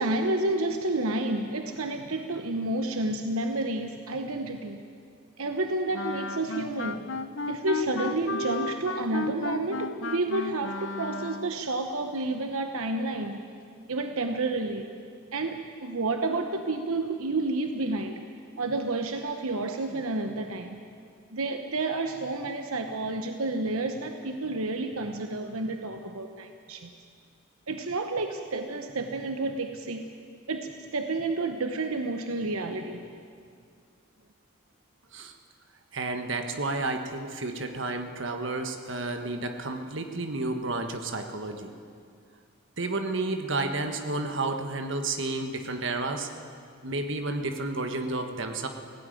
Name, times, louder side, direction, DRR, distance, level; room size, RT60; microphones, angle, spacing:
voice 1, 0.0-4.8 5.4-7.2 7.5-13.4 13.9-14.9 15.3-18.2 18.6-20.8 21.3-26.9 27.7-30.1 30.5-33.0, right 2 dB, 80° right, 6 dB, 1.0 m, -30 dB
Wind instrument woodwind instrument, 5.9-11.6, left 3 dB, 60° left, 0.8 m, -34 dB
voice 2, 35.9-41.7 42.8-46.3 46.8-48.7, right 2 dB, 60° right, 6 dB, 1.5 m, -31 dB
18.0 x 16.0 x 9.2 m, 2.3 s
head